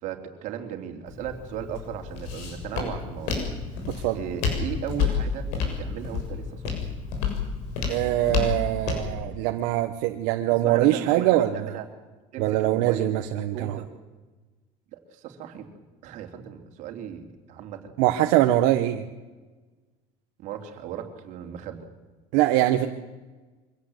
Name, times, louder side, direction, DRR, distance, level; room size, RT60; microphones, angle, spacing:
voice 1, 0.0-3.5 4.1-6.8 10.6-11.8 12.3-13.1 13.5-13.9 14.9-15.7 16.0-17.9 20.4-21.9, right 9 dB, 60° right, 4 dB, 3.2 m, -36 dB
Walk footsteps, 1.1-9.1, left 5 dB, 85° left, 7.0 m, -30 dB
voice 2, 3.9-4.2 7.9-11.7 12.4-13.8 18.0-19.0 22.3-22.9, right 14 dB, 80° right, 5 dB, 1.4 m, -23 dB
24.5 x 17.0 x 8.2 m, 1.2 s
cardioid pair, 150°, 15 cm